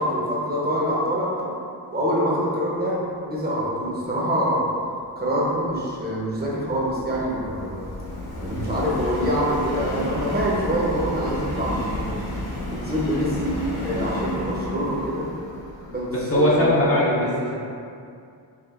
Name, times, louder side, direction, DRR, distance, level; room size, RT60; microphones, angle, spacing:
voice 1, 0.0-1.5 1.9-3.0 3.3-4.7 5.2-7.8 8.4-12.2 12.7-15.3 15.9-16.0 16.4-16.8, equal, 20° right, -6 dB, 0.7 m, -25 dB
Subway metro underground, 5.4-16.7, left 1 dB, 55° left, 0.9 m, -32 dB
voice 2, 16.1-17.5, left 1 dB, 30° left, -7 dB, 0.6 m, -20 dB
4.5 x 2.5 x 2.4 m, 2.4 s
cardioid pair, 95°, 46 cm